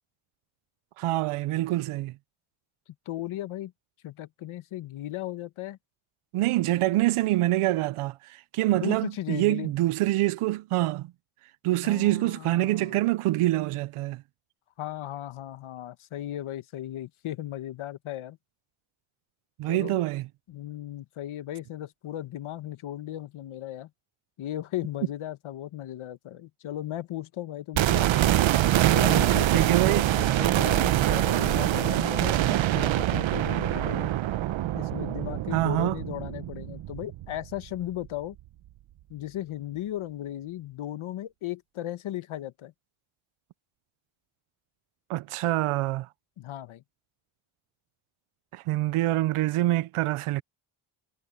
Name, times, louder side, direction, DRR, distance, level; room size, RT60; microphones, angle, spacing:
voice 1, 1.0-2.1 6.3-11.1 11.6-14.2 19.6-20.3 29.5-30.1 35.5-36.0 45.1-46.1 48.5-50.4, right 16 dB, 90° right, 0.6 m, -25 dB
voice 2, 3.1-3.7 4.0-5.8 8.7-9.7 11.8-13.0 14.8-18.4 19.7-20.0 20.5-23.9 24.4-28.1 28.9-34.1 34.7-38.4 39.1-42.7 46.4-46.8, left 13 dB, 75° left, 1.3 m, -36 dB
sound 1, 27.7-37.8 38.0-38.1, right 13 dB, 65° right, 0.8 m, -24 dB
cardioid pair, 125°, 50 cm